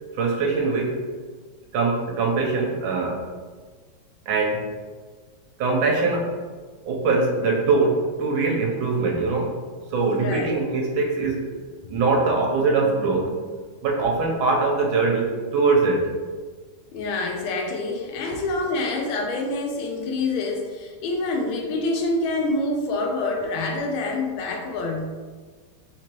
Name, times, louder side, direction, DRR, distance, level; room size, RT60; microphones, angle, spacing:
voice 1, 0.1-1.0 1.7-3.2 4.3-4.7 5.6-6.4 6.9-9.6 9.9-11.5 11.9-13.5 13.8-16.1, right 3 dB, 75° right, -1 dB, 1.5 m, -22 dB
voice 2, 10.1-10.6 16.9-25.2, left 2 dB, 85° left, 1 dB, 1.4 m, -26 dB
4.0 x 3.0 x 2.9 m, 1.5 s
omnidirectional pair, 2.2 m